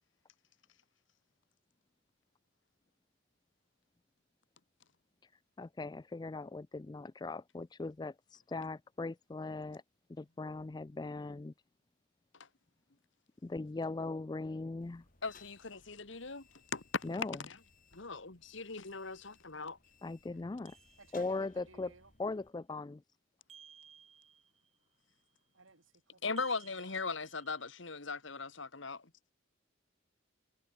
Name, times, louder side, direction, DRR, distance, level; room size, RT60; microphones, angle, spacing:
voice 1, 5.6-9.8 10.1-11.5 13.4-15.1 17.0-17.4 20.0-20.8 21.1-21.9 22.2-23.0, left 3 dB, 20° left, 0.3 m, -39 dB
sound 1, 14.8-22.5, left 4 dB, 40° left, 3.1 m, -62 dB
voice 2, 15.2-16.5 16.7-17.1 17.4-17.6 17.9-19.8 26.2-29.0, left 4 dB, 65° left, 1.8 m, -39 dB
sound 2, 20.6-21.7 23.5-24.8 26.4-27.9, right 7 dB, 30° right, 5.3 m, -59 dB
voice 3, 21.0-22.1 25.5-25.9 26.3-26.5, right 3 dB, 70° right, 4.2 m, -57 dB
head